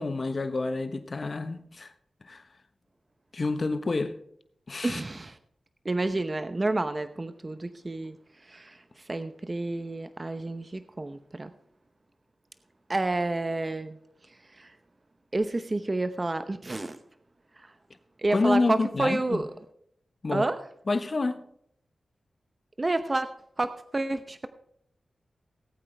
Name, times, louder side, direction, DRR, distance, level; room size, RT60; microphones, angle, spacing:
voice 1, 0.0-1.9 2.3-2.4 3.3-4.1 4.7-5.0 18.3-19.4 20.2-20.4 20.9-21.4, left 3 dB, 50° left, 1.2 m, -28 dB
voice 2, 4.8-5.4 5.8-11.5 12.9-14.0 14.3-14.7 15.3-17.0 17.6-17.7 18.2-19.5 20.3-20.6 22.8-23.3 23.6-24.5, right 2 dB, 35° right, 0.8 m, -30 dB
19.5 x 8.6 x 3.4 m
cardioid pair, 45°, 0 cm